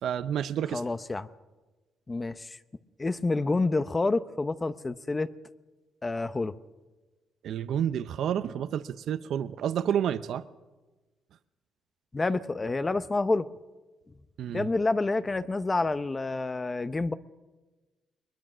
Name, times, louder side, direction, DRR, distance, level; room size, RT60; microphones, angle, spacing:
voice 1, 0.0-0.8 7.4-10.4 14.4-14.7, right 9 dB, 70° right, 13 dB, 0.7 m, -30 dB
voice 2, 0.7-1.3 2.1-2.6 3.0-5.3 6.0-6.5 12.1-13.5 14.5-17.1, left 3 dB, 25° left, 13 dB, 0.8 m, -28 dB
21.5 x 21.0 x 6.2 m, 1.2 s
cardioid pair, 90°, 0 cm